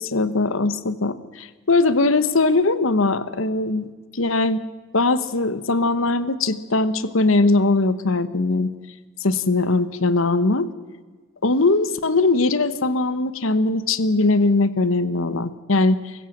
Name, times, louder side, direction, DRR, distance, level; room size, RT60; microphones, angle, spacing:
voice 1, 0.0-3.9 4.1-4.6 4.9-8.7 9.2-10.7 11.4-16.1, left 3 dB, 75° left, 14 dB, 1.1 m, -20 dB
24.5 x 15.0 x 7.3 m, 1.4 s
head